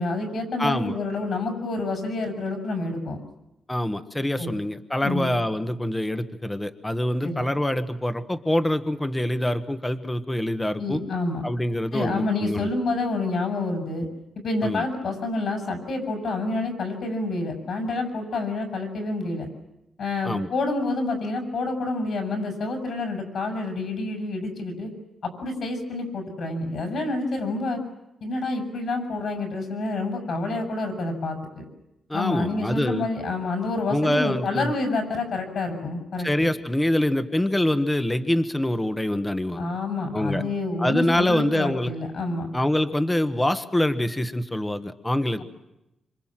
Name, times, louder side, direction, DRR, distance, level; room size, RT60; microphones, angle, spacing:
voice 1, 0.0-3.2 4.4-4.5 5.0-5.3 7.2-7.5 10.8-11.4 11.9-14.1 14.4-19.5 20.0-24.9 25.2-27.8 28.2-31.7 32.1-36.5 39.6-42.5, left 2 dB, 60° left, 5 dB, 6.9 m, -28 dB
voice 2, 0.6-1.0 3.7-11.0 11.4-12.7 14.6-14.8 20.2-20.5 32.1-33.0 33.9-34.7 36.2-39.7 40.1-40.4 40.8-41.9 42.5-45.4, left 1 dB, 10° left, 10 dB, 1.2 m, -25 dB
27.0 x 26.5 x 7.5 m, 0.90 s
wide cardioid pair, 140°, 0 cm